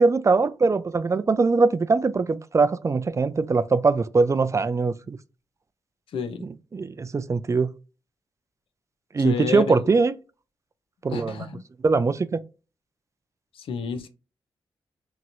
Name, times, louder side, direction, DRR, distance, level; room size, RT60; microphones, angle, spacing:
voice 1, 0.0-5.2 6.7-7.7 9.1-10.1 11.0-11.4 11.8-12.4, right 4 dB, 35° right, 0.4 m, -21 dB
voice 2, 6.1-6.5 9.2-9.9 11.1-11.6 13.5-14.1, left 6 dB, 75° left, 0.5 m, -30 dB
2.9 x 2.7 x 2.5 m
cardioid pair, 55°, 9 cm